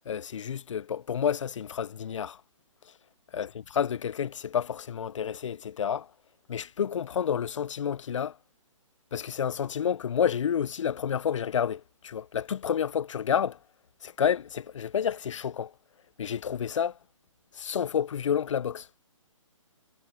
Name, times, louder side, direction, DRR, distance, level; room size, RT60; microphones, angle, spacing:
voice 1, 0.1-2.4 2.9-3.0 3.3-6.1 6.5-8.4 9.1-13.6 14.0-15.7 16.2-17.0 17.5-18.9, left 8 dB, 65° left, 0.6 m, -30 dB
hypercardioid pair, 160°, 17 cm